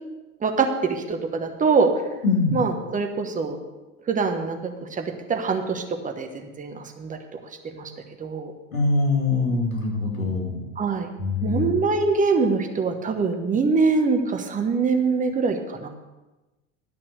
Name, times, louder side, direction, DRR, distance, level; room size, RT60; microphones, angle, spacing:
voice 1, 0.4-1.9 2.5-3.6 4.1-7.2 7.7-7.9 8.2-8.5 10.8-11.1 11.4-15.9, right 4 dB, 20° right, 5 dB, 1.2 m, -24 dB
voice 2, 2.2-2.6 8.7-10.6 11.2-11.6, left 3 dB, 85° left, -2 dB, 2.9 m, -23 dB
12.0 x 5.9 x 6.5 m, 1.1 s
figure-of-eight pair, 85°, 41 cm